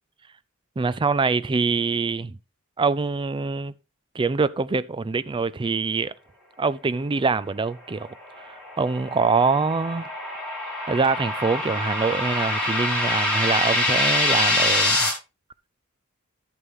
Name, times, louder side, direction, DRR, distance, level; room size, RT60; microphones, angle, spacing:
voice 1, 0.8-2.4 2.8-3.7 4.1-6.1 6.6-10.1 10.9-15.1, right 4 dB, 25° right, 0.4 m, -24 dB
sound 1, 8.3-15.1, left 2 dB, 5° left, 3.4 m, -25 dB
11.0 x 7.0 x 3.7 m
head